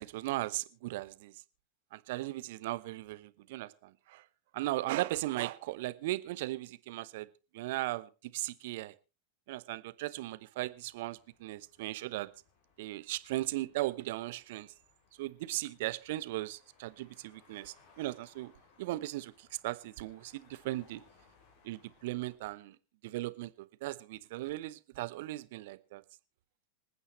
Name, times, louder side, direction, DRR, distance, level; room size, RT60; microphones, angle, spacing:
voice 1, 0.0-1.3 1.9-4.2 4.5-7.3 7.5-8.9 9.5-12.3 12.8-14.7 15.2-18.5 18.8-21.0 21.6-22.8 23.0-26.0, right 17 dB, 50° right, 0.9 m, -37 dB
sound 1, 10.6-22.4, left 4 dB, 50° left, 3.5 m, -66 dB
26.5 x 9.2 x 3.1 m
figure-of-eight pair, 90°, 0 cm